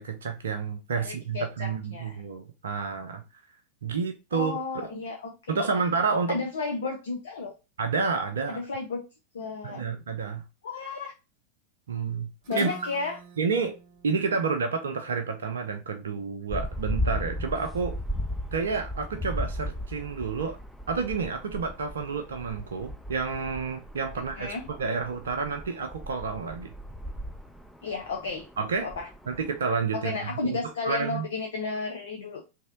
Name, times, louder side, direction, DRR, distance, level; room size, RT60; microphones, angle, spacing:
voice 1, 0.0-3.2 3.8-4.5 5.5-6.4 7.8-8.6 9.6-10.4 11.9-12.7 13.4-13.8 14.0-18.0 18.5-20.6 20.9-26.7 28.6-28.9 29.3-30.6 30.9-31.3, right 5 dB, 65° right, 0.5 m, -30 dB
voice 2, 0.9-2.2 4.3-5.3 6.3-7.5 8.6-9.0 9.3-9.8 10.6-11.1 12.5-13.2 24.1-24.6 27.8-28.5 28.8-29.1 29.9-32.4, left 3 dB, 60° left, 0.6 m, -33 dB
Guitar, 12.4-16.2, right 3 dB, 40° right, 0.9 m, -46 dB
sound 1, 16.5-29.7, equal, ahead, 0.4 m, -36 dB
3.2 x 2.7 x 3.7 m
figure-of-eight pair, 90°, 0 cm